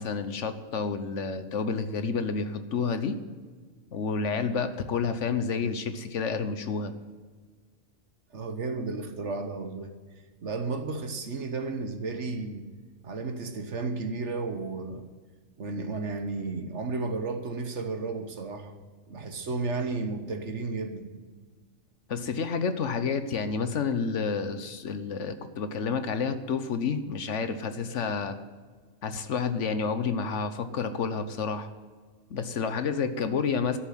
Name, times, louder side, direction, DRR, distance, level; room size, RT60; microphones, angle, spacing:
voice 1, 0.0-3.2 3.9-6.9 22.1-28.4 29.0-31.7 32.3-33.8, left 5 dB, 65° left, 10 dB, 1.2 m, -29 dB
voice 2, 8.3-10.0 10.4-12.6 13.0-15.1 15.6-18.8 19.1-21.1, right 3 dB, 60° right, 7 dB, 1.5 m, -33 dB
12.5 x 7.1 x 9.3 m, 1.5 s
omnidirectional pair, 1.4 m